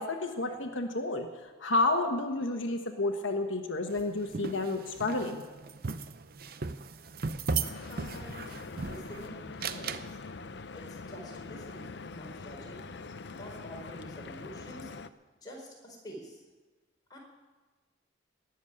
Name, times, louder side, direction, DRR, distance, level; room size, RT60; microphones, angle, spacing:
voice 1, 0.0-5.4, left 2 dB, 85° left, 4 dB, 1.3 m, -30 dB
sound 1, 3.9-9.2 9.6-10.1, right 4 dB, 50° right, 0.6 m, -36 dB
Stream / Boat Water vehicle, 7.6-15.1, left 4 dB, 60° left, 0.6 m, -43 dB
voice 2, 7.9-12.8 13.3-14.9 15.4-16.4 17.1-17.2, equal, 20° left, -2 dB, 4.4 m, -48 dB
18.5 x 7.3 x 9.9 m, 1.3 s
head